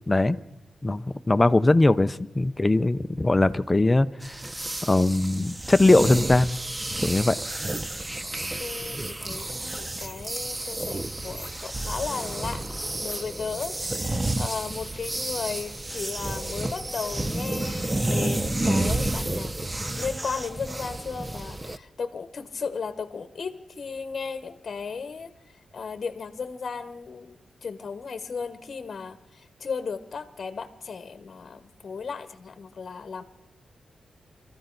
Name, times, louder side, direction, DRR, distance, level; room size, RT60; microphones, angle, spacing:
voice 1, 0.1-0.4 0.8-4.1 4.9-6.6 7.0-7.4, left 2 dB, 20° left, 13 dB, 0.6 m, -20 dB
sound 1, 4.2-21.8, right 2 dB, 15° right, 0.6 m, -30 dB
voice 2, 8.6-12.6 13.0-19.5 19.9-25.3 25.7-33.2, left 5 dB, 50° left, 11 dB, 1.1 m, -35 dB
24.5 x 14.0 x 4.0 m, 0.83 s
wide cardioid pair, 105°, 0 cm